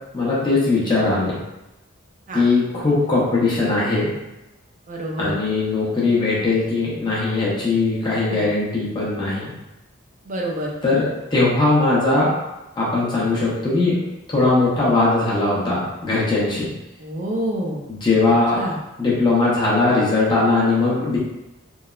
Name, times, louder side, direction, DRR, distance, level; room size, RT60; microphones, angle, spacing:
voice 1, 0.1-1.4 2.3-4.1 5.2-9.5 10.8-12.3 12.8-14.0 14.3-16.7 18.0-18.6 19.0-21.2, left 3 dB, 20° left, -6 dB, 0.6 m, -19 dB
voice 2, 4.9-5.3 8.3-8.5 10.2-10.7 17.0-17.8 18.5-18.8, right 1 dB, 40° right, -1 dB, 0.4 m, -27 dB
3.0 x 2.0 x 2.3 m, 0.98 s
head